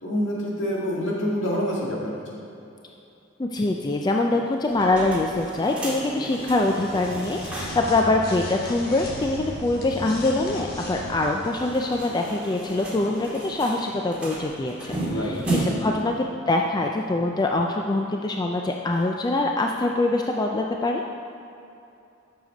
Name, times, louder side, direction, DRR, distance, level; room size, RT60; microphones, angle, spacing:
voice 1, 0.0-2.2 15.1-15.4, equal, 65° left, -5 dB, 2.1 m, -26 dB
voice 2, 3.4-21.0, left 2 dB, 20° left, 1 dB, 0.4 m, -24 dB
sound 1, 4.7-7.9 8.2-8.3 8.6-8.7 11.4-16.0, right 1 dB, 5° right, 2.1 m, -33 dB
sound 2, 6.5-12.1, left 1 dB, 50° left, 1.2 m, -36 dB
7.7 x 6.6 x 5.3 m, 2.7 s
head